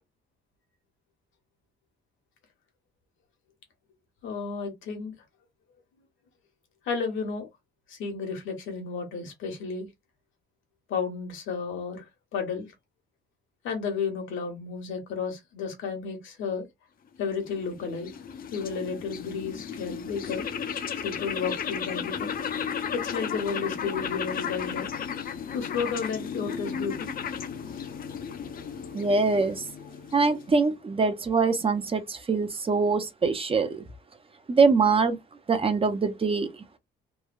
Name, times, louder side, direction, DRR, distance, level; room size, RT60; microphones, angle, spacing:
voice 1, 4.2-5.1 6.8-7.5 7.9-9.9 10.9-12.0 12.3-12.7 13.6-16.7 17.2-18.1 18.5-20.4 21.0-22.4 22.9-24.9 25.5-27.1 27.7-27.9, left 5 dB, 80° left, 1.1 m, -32 dB
sound 1, 17.3-30.7, left 7 dB, 45° left, 0.5 m, -34 dB
voice 2, 28.9-29.6 30.1-33.8 34.5-35.2 35.5-36.5, right 4 dB, 30° right, 0.6 m, -23 dB
3.1 x 2.3 x 2.2 m
cardioid pair, 90°, 20 cm